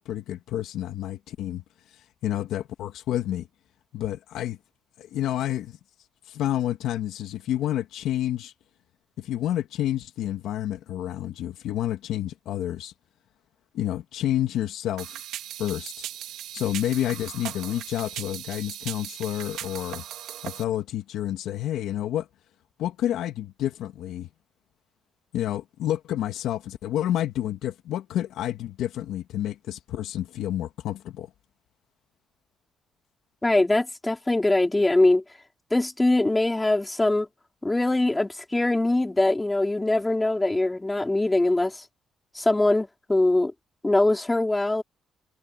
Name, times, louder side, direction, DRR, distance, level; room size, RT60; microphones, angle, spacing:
voice 1, 0.0-1.6 2.2-3.5 3.9-4.6 5.0-5.8 6.3-8.5 9.2-12.9 13.7-15.2 15.6-15.9 16.5-20.0 20.4-22.3 22.8-24.3 25.3-31.3, left 12 dB, 85° left, 1.9 m, -29 dB
sound 1, 15.0-20.6, right 12 dB, 85° right, 2.1 m, -38 dB
voice 2, 33.4-35.2 35.7-37.3 37.6-41.8 42.3-43.5 43.8-44.8, left 2 dB, 15° left, 4.3 m, -22 dB
cardioid pair, 90°, 0 cm